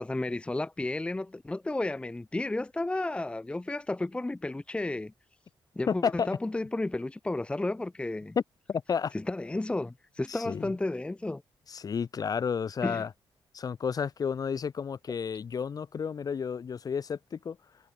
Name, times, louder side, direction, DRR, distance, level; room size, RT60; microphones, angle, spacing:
voice 1, 0.0-5.1 5.7-8.4 9.1-11.4 12.8-13.0, left 2 dB, 10° left, 1.0 m, -32 dB
voice 2, 5.9-6.3 8.7-9.1 10.3-10.7 11.7-13.1 13.5-17.6, left 6 dB, 45° left, 2.7 m, -31 dB
wide cardioid pair, 145°, 9 cm